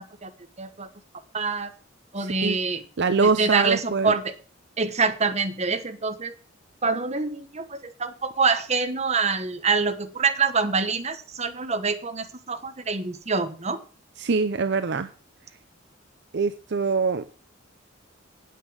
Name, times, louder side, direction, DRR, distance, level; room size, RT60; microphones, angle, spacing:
voice 1, 0.6-0.9 1.3-1.7 2.1-2.8 3.2-4.3 4.8-6.3 6.8-13.8, right 4 dB, 35° right, 8 dB, 1.1 m, -25 dB
voice 2, 2.2-2.6 3.0-4.2 14.2-15.1 16.3-17.3, right 4 dB, 55° right, 11 dB, 0.6 m, -24 dB
9.1 x 8.3 x 6.3 m, 0.40 s
head